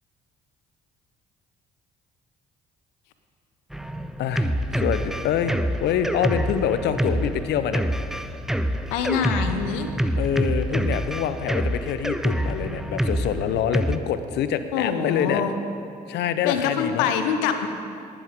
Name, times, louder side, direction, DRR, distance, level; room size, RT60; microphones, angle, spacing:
Drum kit, 3.7-14.0, equal, ahead, 0.8 m, -26 dB
voice 1, 4.2-5.5 5.8-7.8 10.1-15.4 16.1-17.1, left 8 dB, 55° left, 11 dB, 0.8 m, -26 dB
voice 2, 8.9-9.9 14.7-15.6 16.4-17.7, left 7 dB, 70° left, 7 dB, 1.2 m, -25 dB
18.0 x 13.0 x 3.8 m, 2.4 s
hypercardioid pair, 50°, 20 cm